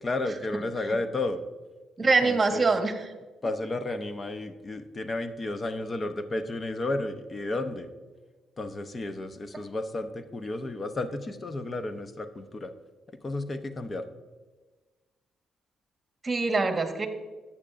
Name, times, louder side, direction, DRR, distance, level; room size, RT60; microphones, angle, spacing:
voice 1, 0.0-1.4 2.0-2.7 3.4-7.9 8.6-12.7 13.2-14.0, left 2 dB, 30° left, 9 dB, 0.7 m, -32 dB
voice 2, 2.0-3.0 16.2-17.1, right 3 dB, 25° right, 5 dB, 1.4 m, -24 dB
13.0 x 8.6 x 2.5 m, 1.3 s
cardioid pair, 90°, 0 cm